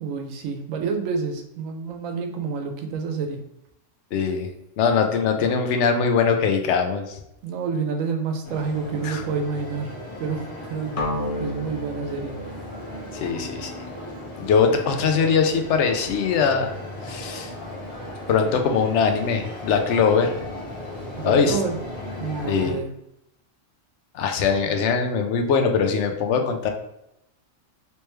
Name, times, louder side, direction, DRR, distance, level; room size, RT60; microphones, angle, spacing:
voice 1, 0.0-3.4 7.4-11.0 11.4-12.4 21.2-21.8 22.2-22.9, right 5 dB, 85° right, 4 dB, 1.0 m, -28 dB
voice 2, 4.1-4.5 4.8-7.2 9.0-9.2 13.2-13.7 14.4-16.7 17.0-17.5 18.3-20.4 21.2-21.6 22.5-22.8 24.1-26.7, left 5 dB, 65° left, 5 dB, 0.8 m, -21 dB
sound 1, 8.4-22.8, left 1 dB, 20° left, 1.4 m, -37 dB
sound 2, 11.0-14.9, left 1 dB, 45° left, 0.4 m, -33 dB
3.2 x 3.1 x 3.2 m, 0.82 s
omnidirectional pair, 1.4 m